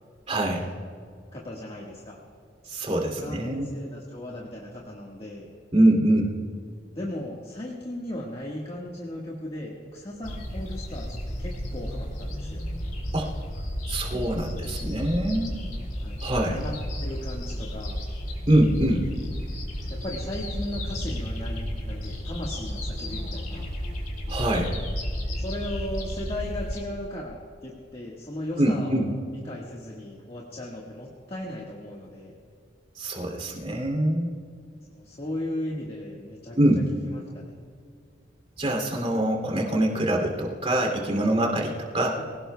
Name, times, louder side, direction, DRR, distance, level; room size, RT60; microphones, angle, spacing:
voice 1, 0.3-0.6 2.7-3.7 5.7-6.3 13.1-13.3 13.9-15.6 16.2-16.6 18.5-19.1 24.3-24.8 28.6-29.1 33.0-34.3 36.6-36.8 38.6-42.2, right 1 dB, 35° right, 1 dB, 2.7 m, -24 dB
voice 2, 1.3-2.2 3.1-5.5 6.9-12.6 14.1-14.2 14.5-15.2 16.0-16.7 17.0-18.0 19.9-23.7 25.4-27.4 27.6-29.2 29.4-32.3 34.9-36.6 37.0-37.5 42.2-42.3, left 1 dB, 30° left, -3 dB, 1.6 m, -37 dB
sound 1, 10.2-26.8, equal, 50° left, 3.0 m, -33 dB
24.5 x 17.5 x 2.3 m, 2.2 s
head